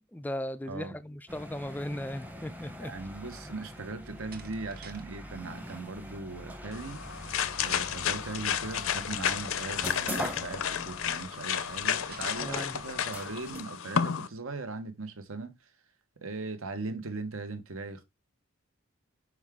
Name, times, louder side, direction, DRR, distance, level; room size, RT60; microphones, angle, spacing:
voice 1, 0.1-2.9 12.4-12.7, left 1 dB, 10° left, 0.4 m, -37 dB
voice 2, 0.7-1.0 2.8-15.7 16.2-18.0, right 3 dB, 70° right, 1.2 m, -39 dB
sound 1, 1.3-13.6, equal, 10° right, 0.8 m, -43 dB
Slam, 4.0-5.1 5.4-5.8 11.5-12.8, right 6 dB, 45° right, 0.9 m, -52 dB
sound 2, 6.7-14.3, left 8 dB, 70° left, 0.6 m, -32 dB
6.2 x 4.8 x 3.6 m
head